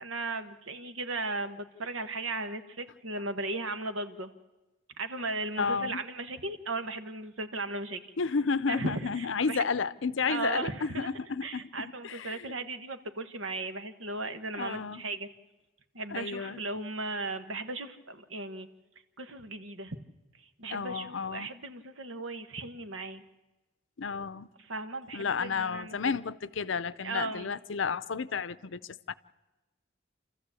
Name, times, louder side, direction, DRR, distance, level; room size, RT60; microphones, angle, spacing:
voice 1, 0.0-4.3 5.0-8.1 8.7-9.6 10.3-11.1 11.4-15.3 15.9-18.7 19.2-20.0 20.6-23.2 24.7-26.1 27.0-27.5, right 2 dB, 85° right, 1.5 m, -36 dB
voice 2, 5.6-6.0 8.2-12.6 14.5-15.0 16.1-16.6 20.7-21.5 24.0-24.5 25.1-29.1, left 5 dB, 65° left, 0.6 m, -32 dB
28.5 x 14.0 x 8.4 m
head